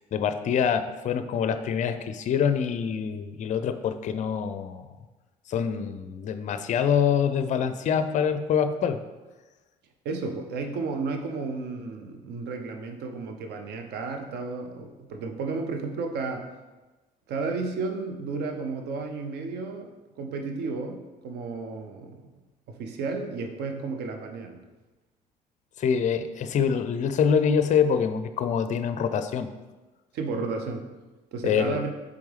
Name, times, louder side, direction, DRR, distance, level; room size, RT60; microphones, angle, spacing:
voice 1, 0.1-4.9 5.5-9.0 25.8-29.5 31.4-31.8, left 7 dB, 35° left, 10 dB, 0.5 m, -25 dB
voice 2, 10.0-16.5 17.3-19.9 20.2-22.2 22.7-24.6 30.1-30.9 31.3-31.9, right 4 dB, 55° right, 5 dB, 0.8 m, -32 dB
7.8 x 3.5 x 3.4 m, 1.2 s
figure-of-eight pair, 50°, 21 cm